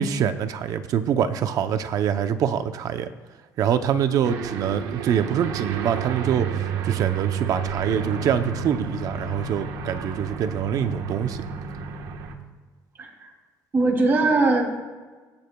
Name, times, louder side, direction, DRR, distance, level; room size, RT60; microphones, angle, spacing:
voice 1, 0.0-3.1 3.6-6.5 6.8-11.4, right 8 dB, 55° right, 9 dB, 0.7 m, -25 dB
Aircraft, 4.2-12.3, right 6 dB, 85° right, 1.3 m, -31 dB
voice 2, 13.0-13.3 13.7-14.7, right 3 dB, 30° right, -1 dB, 2.9 m, -20 dB
24.5 x 8.7 x 2.3 m, 1.4 s
cardioid pair, 130°, 7 cm